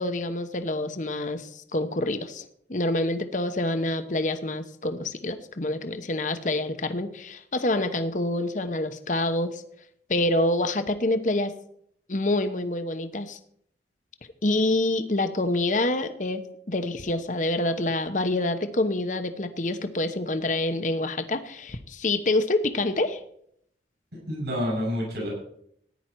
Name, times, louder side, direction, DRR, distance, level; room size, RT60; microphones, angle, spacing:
voice 1, 0.0-2.4 2.7-9.6 10.1-11.5 12.1-13.4 14.4-23.2, left 2 dB, 45° left, 8 dB, 1.0 m, -27 dB
voice 2, 24.1-25.3, equal, 70° right, -3 dB, 7.1 m, -29 dB
14.5 x 10.0 x 4.6 m, 0.67 s
head